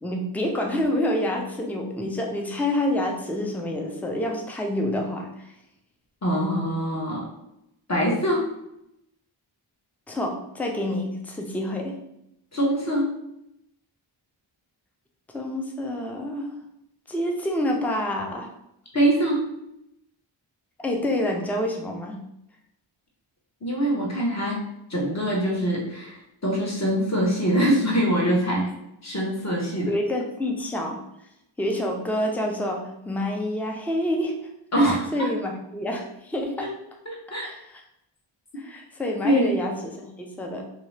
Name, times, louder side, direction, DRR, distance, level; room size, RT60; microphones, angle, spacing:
voice 1, 0.0-5.5 10.1-12.0 15.3-16.6 17.1-18.5 20.8-22.2 29.9-31.0 31.6-34.3 34.8-36.7 37.4-37.6 38.6-40.6, left 1 dB, 5° left, 1 dB, 0.4 m, -28 dB
voice 2, 6.2-7.3 7.9-8.5 12.5-13.1 18.9-19.5 23.6-24.6 24.9-28.7 29.0-29.9 34.7-35.3 37.0-37.5 39.2-39.5, right 1 dB, 35° left, -3 dB, 1.0 m, -23 dB
2.8 x 2.8 x 3.2 m, 0.80 s
wide cardioid pair, 75°, 49 cm